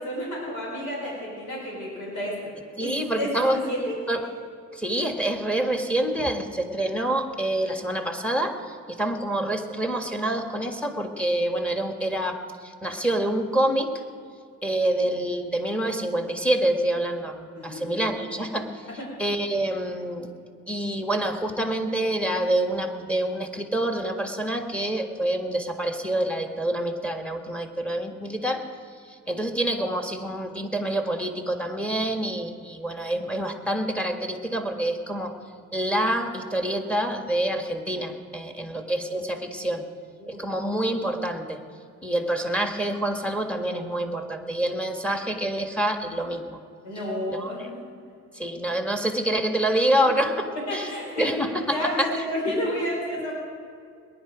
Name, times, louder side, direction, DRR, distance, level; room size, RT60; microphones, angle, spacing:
voice 1, 0.0-2.5 2.8-4.0 15.0-15.1 17.5-18.1 18.9-19.1 38.6-38.7 40.2-40.5 46.8-47.9 50.0-50.1 50.5-51.4 51.7-53.4, left 1 dB, 90° left, -3 dB, 4.5 m, -31 dB
voice 2, 2.8-3.6 4.1-4.3 4.7-13.9 14.6-18.8 19.2-20.3 20.7-28.6 29.1-35.3 35.7-39.8 40.3-41.6 42.0-46.6 47.3-47.5 48.3-50.9 51.2-52.1, right 1 dB, 5° left, 5 dB, 1.7 m, -27 dB
19.5 x 11.0 x 5.0 m, 2.3 s
cardioid pair, 90°, 30 cm